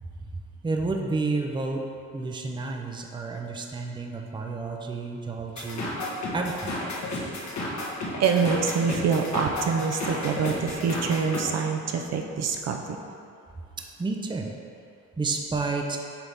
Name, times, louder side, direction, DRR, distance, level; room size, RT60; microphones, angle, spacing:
voice 1, 0.0-1.8 2.1-5.8 6.3-6.8 14.0-14.5 15.2-16.0, right 3 dB, 15° right, 2 dB, 0.5 m, -30 dB
sound 1, 5.6-11.4, left 2 dB, 65° left, 1.4 m, -32 dB
voice 2, 7.6-13.0, right 5 dB, 55° right, 2 dB, 0.6 m, -26 dB
7.1 x 4.0 x 3.5 m, 2.5 s
cardioid pair, 90°, 30 cm